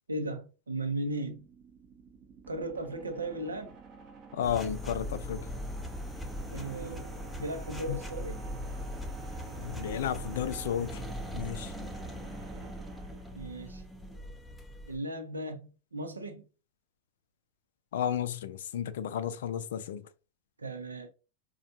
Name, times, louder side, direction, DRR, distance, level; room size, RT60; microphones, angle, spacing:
voice 1, 0.1-1.5 2.5-3.7 6.5-7.0 7.4-8.4 13.3-13.8 14.9-16.5 20.6-21.1, right 2 dB, 75° right, 0.7 m, -36 dB
sound 1, 1.2-14.0, right 5 dB, 30° right, 0.7 m, -48 dB
voice 2, 4.3-5.4 7.9-8.0 9.6-11.0 11.3-11.7 17.9-20.0, left 9 dB, 60° left, 0.4 m, -33 dB
sound 2, 4.4-15.0, left 1 dB, 5° left, 0.6 m, -40 dB
4.2 x 2.4 x 2.6 m
figure-of-eight pair, 90°, 0 cm